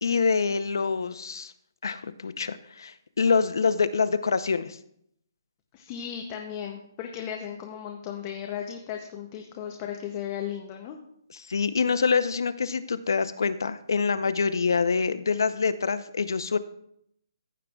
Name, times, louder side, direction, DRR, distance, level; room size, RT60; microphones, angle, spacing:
voice 1, 0.0-1.5 1.8-4.8 11.3-16.6, left 5 dB, 75° left, 11 dB, 0.6 m, -26 dB
voice 2, 5.7-11.0, left 9 dB, 20° left, 2 dB, 0.6 m, -36 dB
15.0 x 7.4 x 2.3 m, 0.71 s
hypercardioid pair, 175°, 2 cm